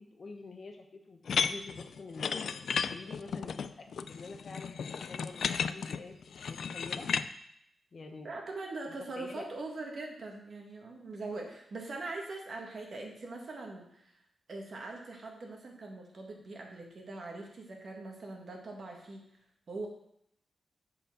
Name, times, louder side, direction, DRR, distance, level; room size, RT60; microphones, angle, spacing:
voice 1, 0.0-2.5 2.9-6.1 6.4-7.1 7.9-8.3 9.1-9.5 11.3-11.5, left 3 dB, 45° left, 4 dB, 1.0 m, -47 dB
sound 1, 1.3-7.3, left 6 dB, 70° left, 0.3 m, -34 dB
voice 2, 8.2-14.2 14.5-19.2 19.7-19.9, right 2 dB, 50° right, 1 dB, 1.6 m, -42 dB
7.7 x 4.4 x 6.4 m, 0.74 s
wide cardioid pair, 135°, 0 cm